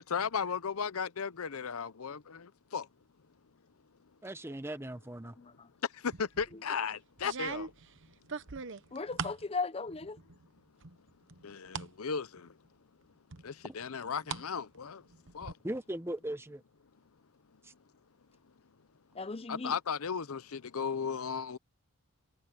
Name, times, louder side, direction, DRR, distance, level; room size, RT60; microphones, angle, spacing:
voice 1, 0.0-2.4 2.7-2.8 6.2-7.7 11.4-12.3 13.4-15.0 15.3-15.5 19.5-21.6, left 6 dB, 80° left, 0.7 m, -35 dB
voice 2, 4.2-5.3 15.6-16.6 17.6-17.7, right 1 dB, 10° right, 0.8 m, -38 dB
voice 3, 5.4-5.7 8.9-10.2 19.1-19.8, left 4 dB, 25° left, 0.7 m, -37 dB
sound 1, 6.1-6.5 7.2-9.4 9.9-10.5 10.8-11.9 12.4-12.5 13.3-14.5 14.8-15.5, right 5 dB, 60° right, 0.9 m, -41 dB
head